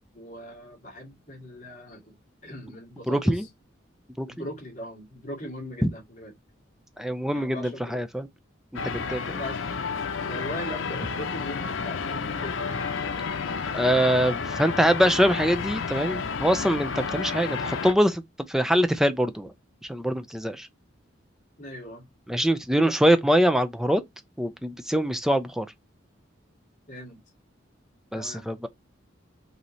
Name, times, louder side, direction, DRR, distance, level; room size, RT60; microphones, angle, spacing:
voice 1, 0.1-2.2 2.4-3.5 4.3-6.3 7.3-8.0 9.4-9.7 10.3-12.8 21.6-22.0 26.9-27.2 28.1-28.5, equal, 40° left, 2.1 m, -39 dB
voice 2, 3.1-3.4 4.2-4.3 7.0-8.3 8.9-9.4 13.7-18.2 18.5-19.5 19.9-20.7 22.3-24.0 24.4-25.7 28.1-28.7, equal, 5° right, 0.5 m, -23 dB
sound 1, 8.8-17.9, left 5 dB, 80° left, 0.7 m, -31 dB
5.2 x 2.8 x 3.1 m
head